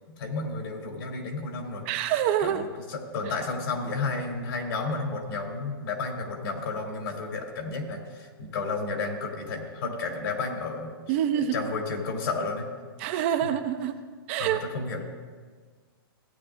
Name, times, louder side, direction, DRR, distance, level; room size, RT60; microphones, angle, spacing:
voice 1, 0.2-1.8 2.4-10.9 11.3-12.7 14.4-15.0, left 3 dB, 70° left, 1 dB, 3.1 m, -32 dB
voice 2, 1.9-2.7 11.1-11.6 13.0-14.0 14.3-14.6, right 10 dB, 30° right, 8 dB, 0.5 m, -26 dB
17.5 x 9.8 x 2.5 m, 1.6 s
hypercardioid pair, 165°, 13 cm